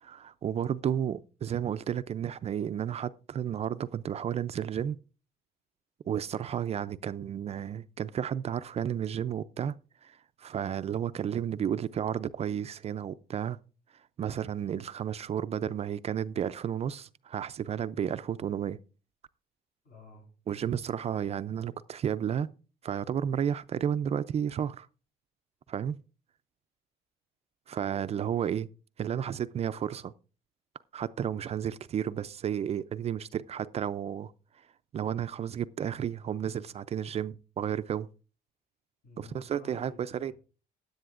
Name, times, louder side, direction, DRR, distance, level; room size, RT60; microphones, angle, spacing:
voice 1, 0.0-5.0 6.1-9.8 10.0-13.6 14.2-18.8 20.5-22.5 22.8-24.9 25.7-26.0 27.7-28.7 29.0-30.1 30.9-34.3 34.9-38.1 39.2-40.3, right 9 dB, 40° right, 0.4 m, -32 dB
voice 2, 19.8-20.3 39.0-40.3, left 3 dB, 60° left, 7.4 m, -51 dB
16.0 x 10.5 x 2.4 m
cardioid pair, 110°, 17 cm